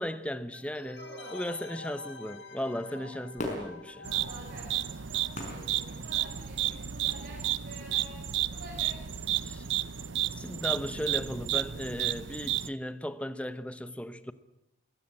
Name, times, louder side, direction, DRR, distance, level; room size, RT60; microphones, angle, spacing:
voice 1, 0.0-1.0 1.3-4.1 9.4-9.7 10.4-14.3, left 1 dB, 5° left, 0.8 m, -36 dB
sound 1, 0.5-6.0 6.3-6.4, left 3 dB, 70° left, 2.2 m, -48 dB
voice 2, 1.0-1.6 2.9-3.0 4.1-9.3, right 1 dB, 50° right, 6.9 m, -49 dB
Fireworks, 3.4-6.7 7.3-7.4, left 1 dB, 40° left, 5.3 m, -41 dB
sound 2, 4.0-12.7, right 11 dB, 85° right, 0.8 m, -32 dB
23.0 x 17.0 x 8.8 m
head